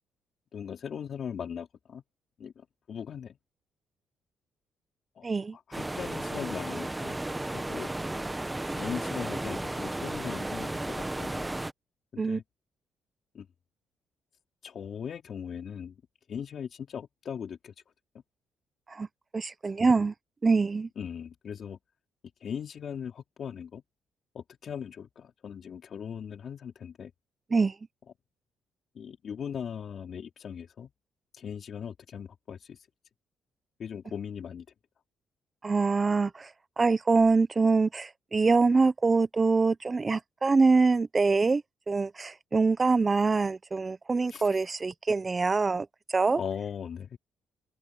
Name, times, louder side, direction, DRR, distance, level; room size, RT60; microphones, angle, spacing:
voice 1, 0.5-2.0 2.4-3.4 5.2-7.2 7.5-7.9 8.8-11.5 12.1-12.4 13.3-13.5 14.6-16.0 16.3-17.7 19.8-19.9 21.0-21.8 22.4-23.8 24.3-27.1 28.9-30.9 31.4-32.8 33.8-34.7 44.3-44.4 46.4-47.2, left 7 dB, 55° left, 3.8 m, -39 dB
voice 2, 5.2-5.6 12.2-12.4 18.9-19.1 19.3-20.1 20.4-20.9 27.5-27.7 35.6-36.5 36.8-41.6 41.9-45.9 46.1-46.4, right 4 dB, 30° right, 0.9 m, -24 dB
sound 1, 5.7-11.7, right 1 dB, 10° right, 1.3 m, -34 dB
open air
cardioid pair, 90°, 0 cm